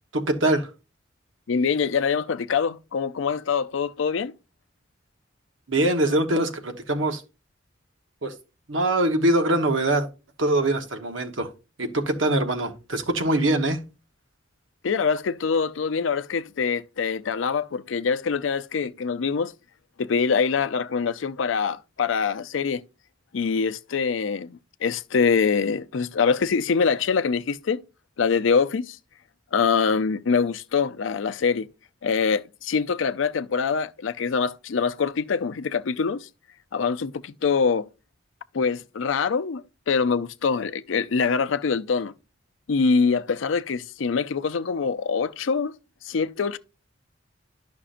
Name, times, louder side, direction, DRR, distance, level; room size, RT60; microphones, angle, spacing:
voice 1, 0.1-0.7 5.7-7.2 8.2-8.3 8.7-10.1 10.4-11.5 11.8-13.8, right 1 dB, 75° right, 1.1 m, -23 dB
voice 2, 1.5-4.3 14.8-19.5 20.0-22.8 23.3-27.8 28.2-29.0 29.5-31.7 32.0-36.3 36.7-37.9 38.5-42.1 42.7-45.7 46.0-46.6, left 5 dB, 75° left, 0.5 m, -24 dB
11.5 x 5.9 x 2.5 m
head